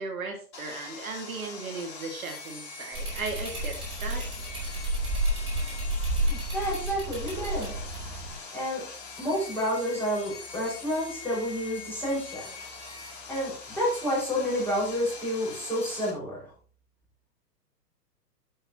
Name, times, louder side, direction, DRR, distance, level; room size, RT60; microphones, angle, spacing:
voice 1, 0.0-4.3, right 4 dB, 55° right, 2 dB, 2.3 m, -36 dB
Sawing, 0.5-16.1, left 4 dB, 45° left, 5.7 m, -43 dB
sound 1, 2.9-8.3, right 1 dB, 10° right, 4.6 m, -31 dB
voice 2, 6.2-7.9 8.5-8.8 9.2-12.5 13.3-16.4, equal, 5° left, -6 dB, 5.5 m, -30 dB
12.0 x 7.9 x 3.0 m, 0.43 s
figure-of-eight pair, 125°, 48 cm